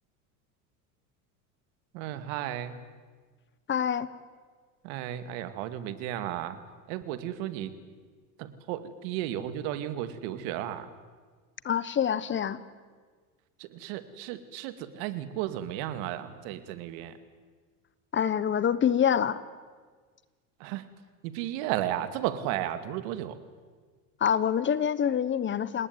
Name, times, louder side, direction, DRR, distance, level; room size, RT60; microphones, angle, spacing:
voice 1, 1.9-2.8 4.8-6.6 6.9-7.7 8.4-10.9 13.6-17.2 20.6-20.8 21.2-23.4, right 12 dB, 70° right, 11 dB, 2.3 m, -34 dB
voice 2, 3.7-4.1 11.6-12.6 18.1-19.4 24.2-25.9, left 8 dB, 25° left, 16 dB, 1.1 m, -26 dB
28.0 x 19.5 x 9.5 m, 1.5 s
supercardioid pair, 125°, 42 cm